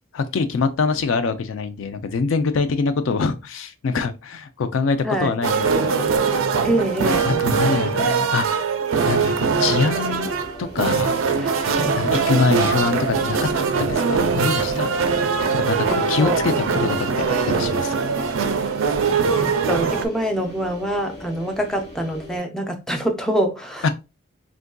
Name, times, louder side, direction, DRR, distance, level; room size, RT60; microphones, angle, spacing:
voice 1, 0.1-6.2 7.2-8.7 9.1-10.3 10.6-11.2 12.0-13.5 13.8-15.0 15.5-18.0 23.8-23.9, left 4 dB, 65° left, 0.4 m, -24 dB
sound 1, 5.4-20.1, right 5 dB, 75° right, 0.4 m, -22 dB
voice 2, 6.6-7.5 11.4-11.5 11.8-12.0 15.9-16.4 19.4-23.9, right 1 dB, 5° left, 0.4 m, -25 dB
sound 2, 9.8-22.4, left 2 dB, 30° left, 1.0 m, -40 dB
3.5 x 2.5 x 2.2 m
head